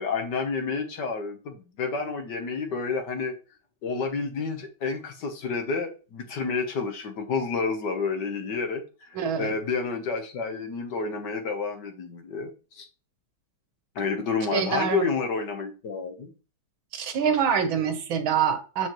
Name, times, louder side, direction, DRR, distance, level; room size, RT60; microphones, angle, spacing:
voice 1, 0.0-3.3 3.8-12.9 13.9-16.3, left 4 dB, 60° left, 1.6 m, -30 dB
voice 2, 9.2-9.5 14.5-15.1 16.9-18.9, right 7 dB, 70° right, 1.8 m, -25 dB
7.3 x 6.4 x 3.1 m
omnidirectional pair, 2.3 m